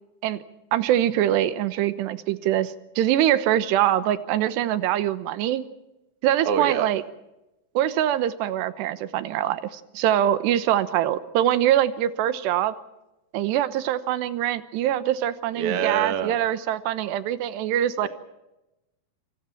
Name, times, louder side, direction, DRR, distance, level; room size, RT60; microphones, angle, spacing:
voice 1, 0.7-5.6 6.2-7.0 7.7-12.7 13.3-18.1, right 11 dB, 90° right, 12 dB, 3.3 m, -23 dB
voice 2, 6.4-6.9 15.6-16.3 18.0-18.1, right 7 dB, 45° right, 6 dB, 2.1 m, -25 dB
27.5 x 26.0 x 4.5 m, 0.95 s
omnidirectional pair, 4.7 m